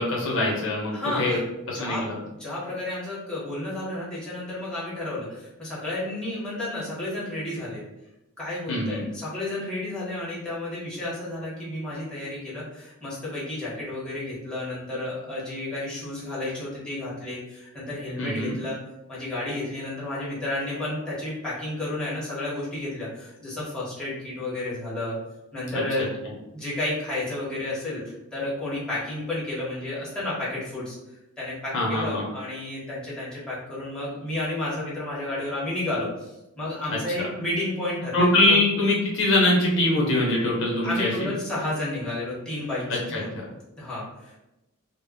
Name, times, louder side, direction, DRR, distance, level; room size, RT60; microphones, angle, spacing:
voice 1, 0.0-1.4 1.7-2.2 8.7-9.0 18.2-18.6 25.7-25.8 31.7-32.2 37.1-37.3 38.1-41.3 42.9-43.4, left 1 dB, 60° left, -3 dB, 0.6 m, -23 dB
voice 2, 0.9-1.5 1.7-2.0 2.4-7.8 8.4-18.8 19.1-25.2 25.5-26.1 26.5-38.6 40.8-43.3 43.8-44.4, left 1 dB, 5° left, -8 dB, 0.9 m, -31 dB
2.1 x 2.0 x 3.4 m, 0.93 s
head